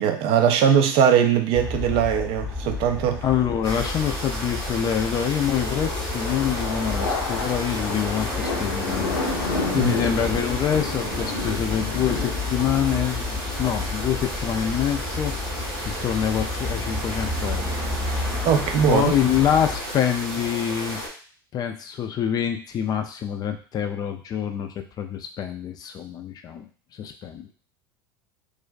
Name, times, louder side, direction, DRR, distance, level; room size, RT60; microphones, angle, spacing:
voice 1, 0.0-3.2 9.7-10.0 18.5-19.1, right 8 dB, 50° right, 7 dB, 0.4 m, -20 dB
sound 1, 1.5-19.8, left 3 dB, 5° left, 0.8 m, -32 dB
voice 2, 3.2-17.8 18.2-18.3 18.9-21.0 21.5-26.7 27.0-27.5, left 9 dB, 35° left, 5 dB, 0.3 m, -26 dB
sound 2, 3.6-21.1, right 1 dB, 85° right, 1.3 m, -33 dB
sound 3, 5.3-18.3, left 3 dB, 80° left, 0.5 m, -33 dB
2.4 x 2.1 x 2.4 m, 0.40 s
hypercardioid pair, 80°, 12 cm